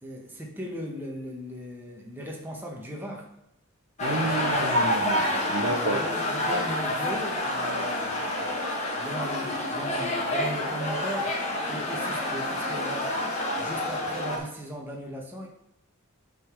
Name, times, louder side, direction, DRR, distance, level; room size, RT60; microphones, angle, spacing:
voice 1, 0.0-3.3 5.8-13.3 13.6-15.5, equal, 10° right, 0 dB, 1.0 m, -38 dB
sound 1, 4.0-14.4, left 1 dB, 30° left, 1.4 m, -28 dB
voice 2, 4.0-6.0, right 2 dB, 70° right, 5 dB, 0.9 m, -31 dB
8.9 x 3.9 x 4.8 m, 0.78 s
head